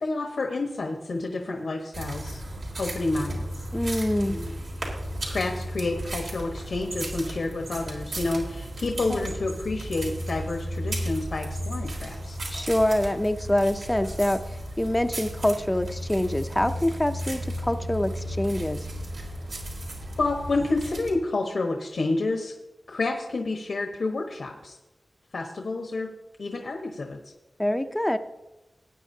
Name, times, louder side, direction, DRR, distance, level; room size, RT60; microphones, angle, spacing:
voice 1, 0.0-2.4 2.8-3.6 4.2-4.5 5.3-12.4 20.2-22.5 22.9-24.8 25.3-26.1 26.4-27.3, left 2 dB, 80° left, 2 dB, 1.2 m, -29 dB
sound 1, 1.9-21.1, right 1 dB, 80° right, 3.4 m, -34 dB
voice 2, 3.7-4.4 9.1-9.2 12.5-18.9 27.6-28.2, left 1 dB, 10° left, 8 dB, 0.5 m, -25 dB
18.5 x 9.3 x 2.8 m, 1.0 s
wide cardioid pair, 115°, 0 cm